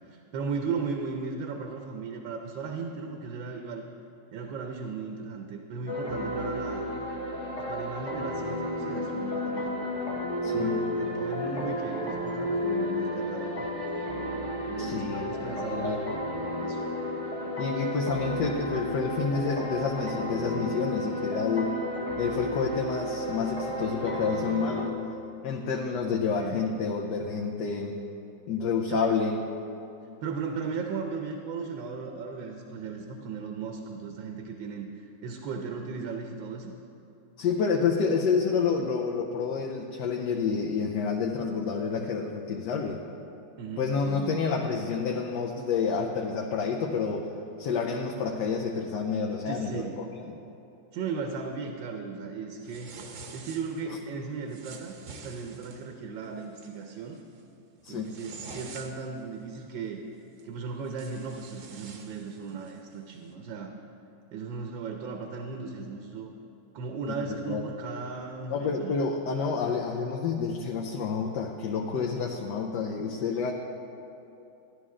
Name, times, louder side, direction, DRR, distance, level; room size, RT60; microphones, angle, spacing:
voice 1, 0.0-3.8 4.3-6.8 7.6-9.7 10.5-13.7 14.6-16.0 16.5-16.8 26.1-26.7 28.9-29.2 30.2-36.7 43.6-44.4 49.5-50.0 50.9-52.9 53.3-57.2 57.9-60.0 60.4-63.7 64.3-66.3 66.7-69.0, right 5 dB, 80° right, 4 dB, 1.4 m, -36 dB
sound 1, 5.9-24.9, left 1 dB, 25° left, 0.9 m, -32 dB
voice 2, 10.4-10.8 14.8-15.3 15.6-16.1 17.6-21.8 22.2-25.1 25.4-27.9 28.5-29.4 37.4-43.0 43.8-47.3 47.6-50.4 57.8-58.1 67.2-67.6 68.5-73.5, left 5 dB, 70° left, 0 dB, 1.3 m, -29 dB
sound 2, 52.6-53.9 54.5-55.9 56.4-56.7 57.1-57.4 57.8-59.2 60.4-60.5 60.8-62.8, right 4 dB, 55° right, 0.9 m, -47 dB
13.0 x 11.0 x 3.7 m, 2.8 s
omnidirectional pair, 2.0 m